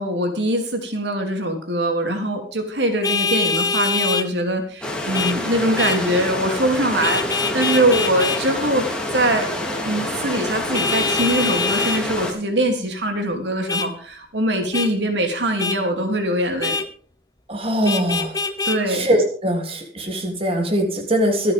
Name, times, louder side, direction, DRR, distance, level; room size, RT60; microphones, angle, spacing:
voice 1, 0.0-8.9 9.1-9.5 9.8-16.8 18.6-19.1, right 1 dB, 75° right, 4 dB, 3.1 m, -22 dB
Vehicle horn car horn honking, 3.0-4.3 5.1-5.4 5.8-6.0 7.0-8.4 10.7-12.0 13.7-13.9 14.7-14.9 15.6-15.8 16.6-16.9 17.8-18.8, left 4 dB, 20° left, 1.2 m, -23 dB
sound 1, 4.8-12.3, left 1 dB, 5° left, 3.2 m, -27 dB
voice 2, 17.5-18.4 18.9-21.5, right 1 dB, 30° right, 3 dB, 3.1 m, -21 dB
25.0 x 9.2 x 3.6 m, 0.44 s
head